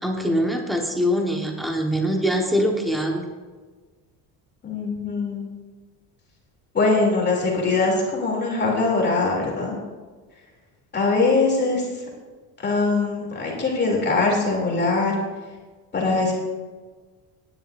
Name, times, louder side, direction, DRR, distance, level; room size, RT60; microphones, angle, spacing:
voice 1, 0.0-3.3, equal, ahead, 1 dB, 1.3 m, -23 dB
voice 2, 4.6-5.5 6.7-9.8 10.9-12.0 12.6-15.1 15.9-16.4, left 3 dB, 25° left, -2 dB, 3.0 m, -22 dB
18.5 x 11.0 x 2.6 m, 1.4 s
cardioid pair, 165°, 42 cm